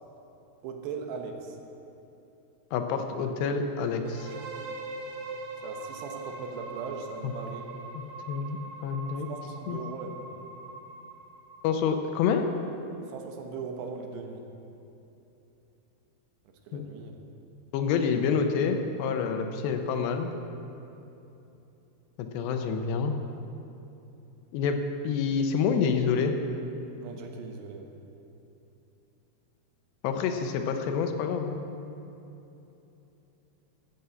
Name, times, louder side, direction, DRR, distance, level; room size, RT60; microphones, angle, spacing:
voice 1, 0.6-1.6 5.6-7.6 9.3-10.3 13.1-14.4 16.7-17.1 27.0-28.0, right 5 dB, 85° right, 3 dB, 3.3 m, -39 dB
voice 2, 2.7-4.3 7.9-9.3 9.7-9.8 11.6-12.4 16.7-16.8 17.7-20.3 22.2-23.1 24.5-24.8 25.0-26.3 30.0-31.6, left 6 dB, 85° left, 6 dB, 3.0 m, -28 dB
sound 1, 4.0-11.8, right 3 dB, 65° right, 2.6 m, -42 dB
14.0 x 7.0 x 7.7 m, 2.9 s
omnidirectional pair, 4.8 m